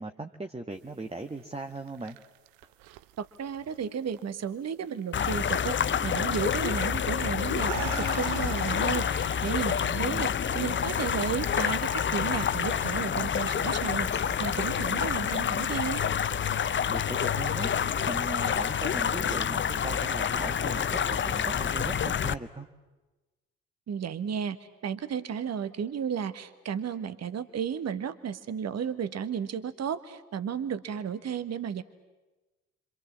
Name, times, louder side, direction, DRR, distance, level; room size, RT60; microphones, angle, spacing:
voice 1, 0.0-2.2 9.9-10.3 16.9-17.7 18.0-22.7, right 2 dB, 15° right, 6 dB, 1.5 m, -38 dB
sound 1, 1.6-4.5 4.8-5.3 6.5-6.7 7.3-9.5, right 15 dB, 60° right, 0.8 m, -42 dB
voice 2, 3.2-16.0 23.9-24.6 24.8-31.8, right 7 dB, 40° right, 14 dB, 1.4 m, -33 dB
sound 2, 5.1-22.3, left 7 dB, 30° left, 0.8 m, -28 dB
sound 3, 7.0-20.0, left 13 dB, 60° left, 0.9 m, -41 dB
28.0 x 26.5 x 7.4 m, 1.2 s
figure-of-eight pair, 50°, 40 cm